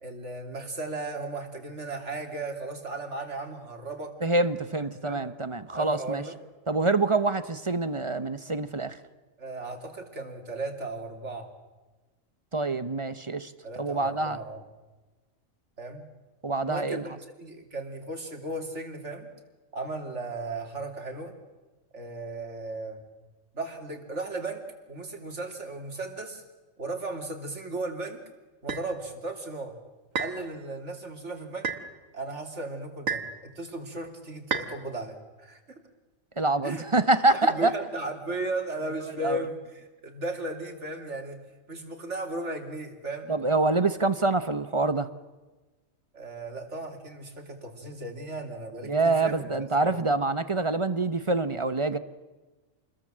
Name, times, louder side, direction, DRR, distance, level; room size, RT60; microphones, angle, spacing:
voice 1, 0.0-4.2 4.7-5.3 5.7-6.4 9.4-11.5 13.6-14.6 15.8-16.0 16.6-17.1 17.4-19.3 19.7-21.3 21.9-23.0 23.5-26.4 26.8-28.2 28.6-29.7 30.2-31.7 32.1-35.8 36.6-36.9 37.3-41.4 41.7-43.4 46.1-50.0, right 2 dB, 60° right, 3.3 m, -36 dB
voice 2, 4.2-6.2 6.7-9.0 12.5-13.5 13.8-14.4 16.4-17.1 36.4-37.7 39.2-39.4 43.3-45.1 48.9-52.0, right 3 dB, 25° right, 0.8 m, -26 dB
sound 1, 28.7-28.9 30.2-30.4 31.6-31.9 33.1-33.4 34.5-34.7, right 5 dB, 75° right, 2.0 m, -30 dB
28.5 x 21.0 x 7.6 m
omnidirectional pair, 1.4 m